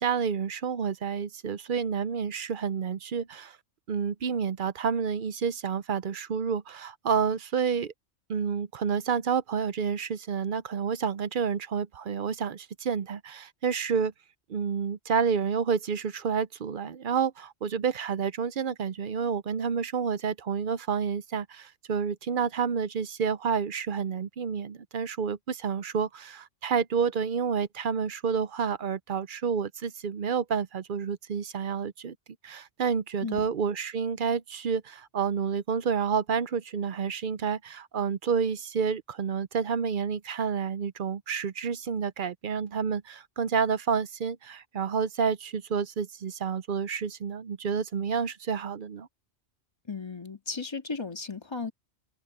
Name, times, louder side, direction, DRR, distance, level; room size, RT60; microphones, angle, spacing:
voice 1, 0.0-3.6 3.9-7.9 8.3-14.1 14.5-32.1 32.4-49.1, right 6 dB, 55° right, 0.7 m, -29 dB
voice 2, 49.9-51.7, left 4 dB, 25° left, 1.8 m, -35 dB
open air
omnidirectional pair, 1.1 m